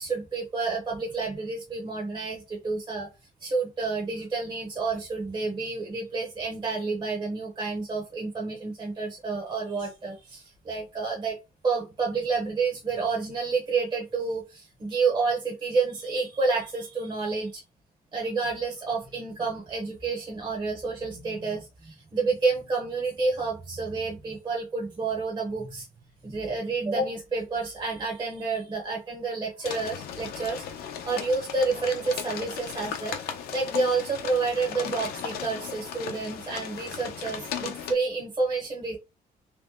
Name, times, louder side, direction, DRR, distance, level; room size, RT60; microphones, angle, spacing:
voice 1, 0.0-3.1 3.4-11.4 11.6-17.6 18.1-25.9 26.2-30.6 31.0-39.0, right 4 dB, 30° right, -1 dB, 1.1 m, -29 dB
sound 1, 29.6-37.9, left 8 dB, 85° left, 0.7 m, -36 dB
3.1 x 2.5 x 3.6 m, 0.25 s
cardioid pair, 135°, 16 cm